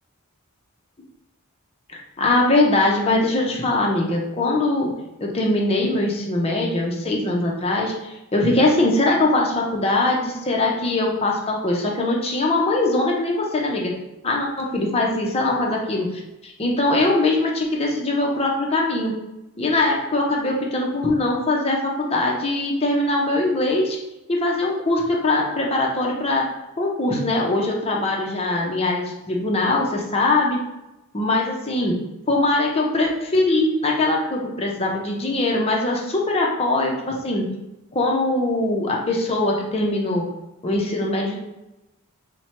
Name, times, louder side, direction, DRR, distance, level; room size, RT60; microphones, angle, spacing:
voice 1, 2.2-4.9 5.2-14.0 14.2-16.1 16.4-19.1 19.6-24.0 24.3-26.5 26.8-30.6 31.1-32.0 32.3-37.5 37.9-40.3 40.6-41.4, left 2 dB, 25° left, -1 dB, 0.7 m, -21 dB
4.3 x 2.2 x 4.3 m, 0.95 s
head